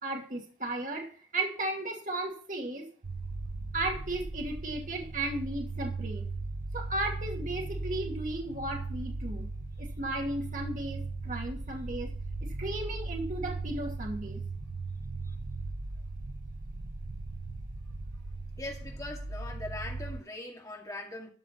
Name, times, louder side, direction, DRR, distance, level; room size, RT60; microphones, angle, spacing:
voice 1, 0.0-2.9 3.7-6.2 6.7-9.5 9.8-12.1 12.4-14.4, right 2 dB, 45° right, 2.5 m, -35 dB
sound 1, 3.0-20.2, right 3 dB, 80° right, 0.8 m, -38 dB
voice 2, 18.6-21.3, left 2 dB, 20° left, 2.2 m, -41 dB
13.0 x 5.2 x 7.5 m
head